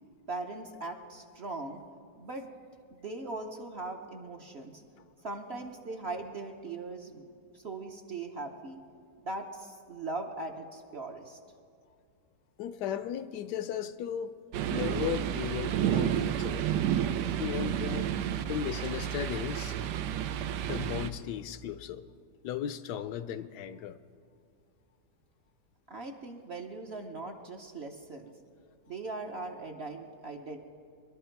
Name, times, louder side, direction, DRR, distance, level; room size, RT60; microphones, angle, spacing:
voice 1, 0.3-1.8 2.2-2.5 2.9-4.8 5.2-7.3 7.5-8.8 9.2-11.4 25.9-28.4 28.9-30.6, right 2 dB, 50° right, 2 dB, 0.9 m, -40 dB
voice 2, 12.6-14.3 14.7-16.7 17.4-18.1 18.5-19.8 20.7-22.0 22.4-24.0, left 10 dB, 80° left, 12 dB, 1.1 m, -36 dB
sound 1, 14.5-21.1, right 10 dB, 80° right, 1.2 m, -31 dB
21.5 x 12.0 x 4.5 m, 2.4 s
omnidirectional pair, 1.8 m